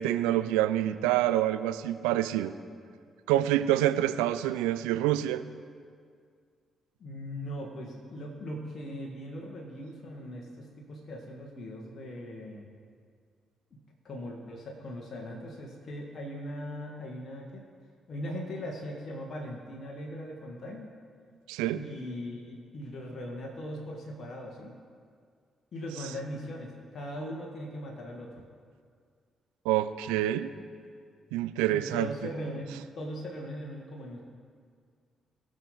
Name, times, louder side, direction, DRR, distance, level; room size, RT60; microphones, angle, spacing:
voice 1, 0.0-2.5 3.3-5.4 21.5-21.8 29.6-30.5 31.3-32.1, right 13 dB, 80° right, 12 dB, 0.4 m, -27 dB
voice 2, 7.0-12.7 13.7-17.6 18.1-20.9 21.7-24.7 25.7-28.4 31.6-34.2, equal, 50° left, -1 dB, 1.8 m, -40 dB
20.0 x 6.7 x 4.0 m, 2.1 s
hypercardioid pair, 45°, 0 cm